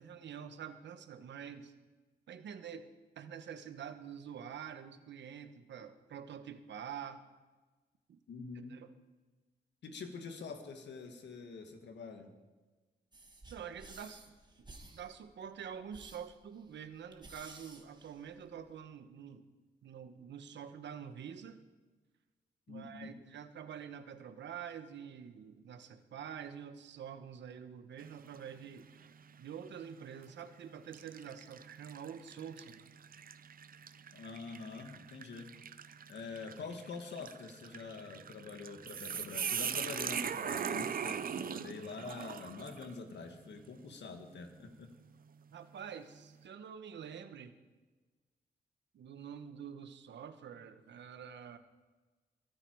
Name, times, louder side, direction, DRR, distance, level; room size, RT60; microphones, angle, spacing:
voice 1, 0.0-1.7 2.3-2.9 3.2-7.2 8.1-8.2 8.7-8.9 13.5-14.7 14.9-19.5 19.8-21.6 22.7-28.9 29.4-32.8 45.5-47.5 48.9-51.6, right 8 dB, 85° right, 10 dB, 1.1 m, -47 dB
voice 2, 8.3-8.8 9.8-12.3 22.7-23.2 34.1-35.5 36.1-44.9, left 4 dB, 80° left, 6 dB, 1.9 m, -45 dB
sound 1, 13.1-18.7, right 2 dB, 25° right, 1.8 m, -55 dB
sound 2, 28.0-28.5 29.0-29.1 30.1-30.3 30.9-42.9, right 7 dB, 55° right, 0.6 m, -41 dB
22.5 x 9.8 x 4.7 m, 1.3 s
cardioid pair, 85°, 18 cm